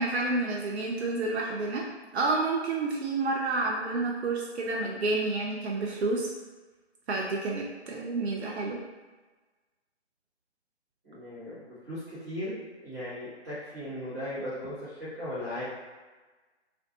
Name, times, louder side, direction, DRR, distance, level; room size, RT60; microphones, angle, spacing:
voice 1, 0.0-1.8 2.1-6.3 7.1-8.8, right 3 dB, 65° right, -2 dB, 0.5 m, -29 dB
voice 2, 11.0-12.6 12.8-15.6, left 1 dB, 15° right, -13 dB, 0.5 m, -37 dB
2.5 x 2.1 x 2.6 m, 1.3 s
figure-of-eight pair, 145°, 35 cm